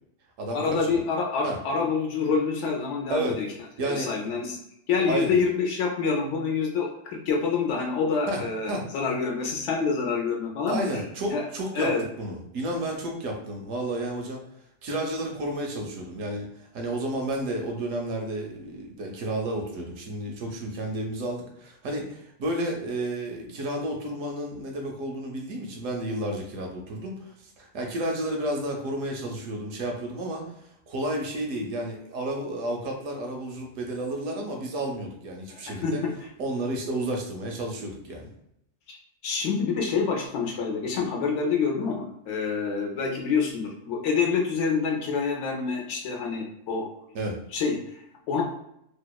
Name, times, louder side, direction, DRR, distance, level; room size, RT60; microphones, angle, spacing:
voice 1, 0.5-3.5 3.8-4.6 4.9-11.4 11.7-12.0 35.5-35.9 38.9-39.0 39.2-46.9 47.5-48.4, left 5 dB, 70° left, 1 dB, 0.8 m, -27 dB
voice 2, 3.1-3.4 3.8-4.2 5.0-5.4 8.3-8.9 10.7-14.4 14.8-30.5 30.9-36.0 36.4-38.3 47.1-47.4, right 1 dB, 85° right, 1 dB, 1.0 m, -31 dB
2.8 x 2.0 x 2.2 m, 0.76 s
omnidirectional pair, 1.3 m